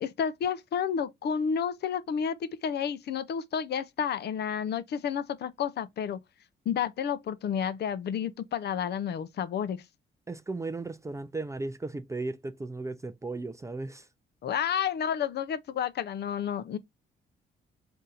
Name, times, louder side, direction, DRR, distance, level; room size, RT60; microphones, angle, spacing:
voice 1, 0.0-6.2 6.7-9.8 14.4-16.8, left 8 dB, 55° left, 0.5 m, -31 dB
voice 2, 10.3-14.0, right 3 dB, 15° right, 0.4 m, -36 dB
3.7 x 2.7 x 4.0 m
cardioid pair, 90°, 20 cm